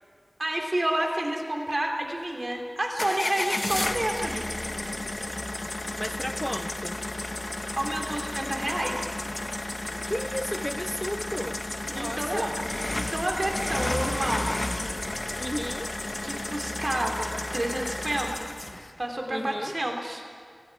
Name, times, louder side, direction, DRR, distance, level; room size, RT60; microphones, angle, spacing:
voice 1, 0.4-4.6 7.8-9.1 11.9-12.5 12.9-14.5 16.2-18.5 19.0-20.2, right 1 dB, 55° right, 1 dB, 3.2 m, -30 dB
sound 1, 3.0-18.9, left 1 dB, 60° left, 1.2 m, -32 dB
voice 2, 6.0-7.0 10.0-11.6 11.9-12.6 15.4-15.9 19.3-19.8, equal, 10° left, 10 dB, 0.5 m, -33 dB
28.0 x 19.0 x 4.8 m, 2.1 s
wide cardioid pair, 45°, 0 cm